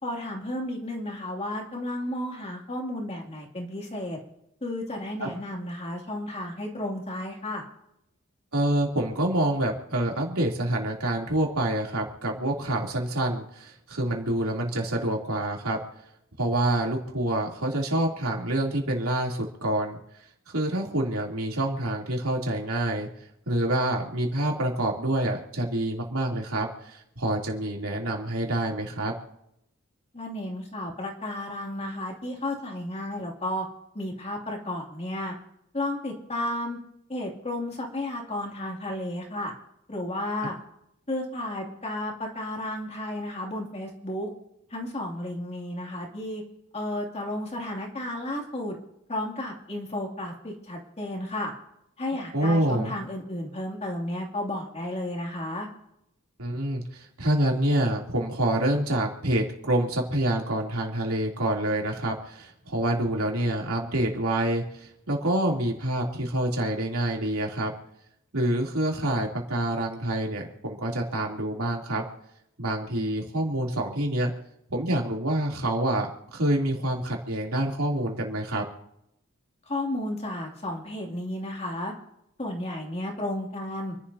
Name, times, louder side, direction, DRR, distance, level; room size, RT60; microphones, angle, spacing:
voice 1, 0.0-4.2 4.6-7.6 30.1-33.7 33.9-35.3 35.7-36.8 37.1-39.5 39.9-40.6 41.1-44.3 44.7-46.4 46.7-48.7 49.1-51.5 52.0-55.7 79.7-81.9 82.4-83.9, left 1 dB, 30° left, 0 dB, 2.7 m, -33 dB
voice 2, 8.5-15.8 16.4-20.0 20.5-23.1 23.5-29.1 40.4-40.5 52.3-52.9 56.4-67.7 68.3-72.0 72.6-74.3 74.7-78.6, right 1 dB, 85° right, -1 dB, 3.2 m, -27 dB
28.5 x 11.5 x 2.8 m, 0.79 s
head